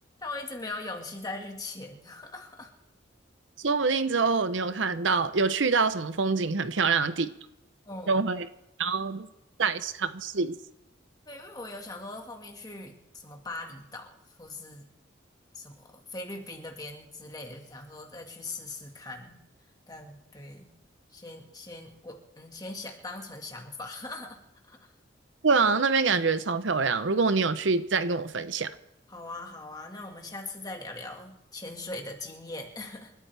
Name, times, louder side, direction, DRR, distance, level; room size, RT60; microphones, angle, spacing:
voice 1, 0.2-2.7 7.8-8.2 11.3-14.1 14.4-14.9 15.5-19.4 19.9-20.7 21.1-24.4 24.7-24.9 29.1-33.1, left 2 dB, 20° left, 1.9 m, -40 dB
voice 2, 3.6-7.3 8.1-8.5 8.8-9.3 9.6-10.6 25.4-28.7, right 4 dB, 80° right, 0.8 m, -25 dB
28.0 x 13.5 x 3.4 m
head